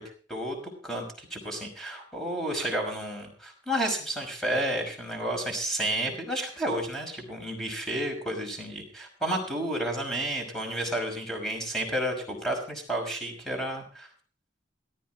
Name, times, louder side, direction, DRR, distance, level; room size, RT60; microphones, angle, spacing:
voice 1, 0.3-14.1, right 1 dB, ahead, 1 dB, 5.7 m, -31 dB
18.0 x 13.5 x 3.8 m, 0.41 s
head